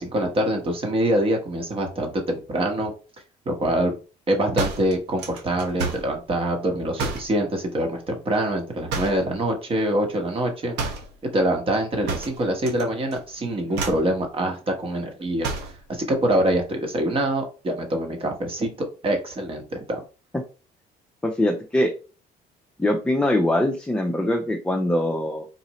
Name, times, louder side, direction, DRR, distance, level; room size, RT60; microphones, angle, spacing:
voice 1, 0.0-2.9 3.4-3.9 4.3-10.7 11.3-15.5 15.9-20.0, right 1 dB, 35° right, 3 dB, 1.2 m, -25 dB
sound 1, 4.6-6.1 7.0-7.4 8.9-9.3 10.8-11.1 12.1-12.8 13.1-13.4 13.7-14.1 15.4-15.8, right 4 dB, 80° right, 1.0 m, -30 dB
voice 2, 21.2-21.9 22.8-25.4, left 1 dB, 5° left, 1 dB, 0.6 m, -22 dB
4.1 x 2.6 x 3.0 m, 0.34 s
cardioid pair, 110°, 17 cm